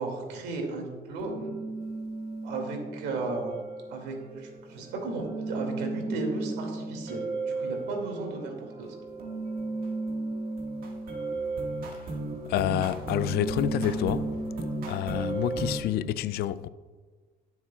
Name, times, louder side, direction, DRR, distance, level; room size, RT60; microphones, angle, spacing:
voice 1, 0.0-1.6 2.4-3.6 3.9-8.9, right 3 dB, 85° right, 2.4 m, -35 dB
sound 1, 1.2-15.8, right 3 dB, 60° right, 1.7 m, -34 dB
voice 2, 12.5-14.3 14.9-16.7, left 12 dB, 70° left, 0.4 m, -28 dB
18.0 x 7.2 x 2.4 m
cardioid pair, 110°, 17 cm